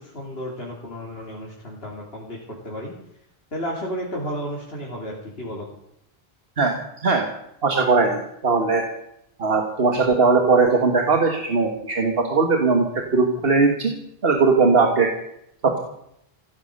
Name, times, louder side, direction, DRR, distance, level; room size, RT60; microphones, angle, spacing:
voice 1, 0.0-2.4 2.6-2.9 3.5-5.7, equal, 75° left, -3 dB, 3.5 m, -32 dB
voice 2, 7.6-8.8 9.4-13.9 14.2-15.1 15.6-15.8, right 4 dB, 70° right, 3 dB, 1.8 m, -19 dB
16.0 x 12.0 x 6.6 m, 0.77 s
omnidirectional pair, 1.0 m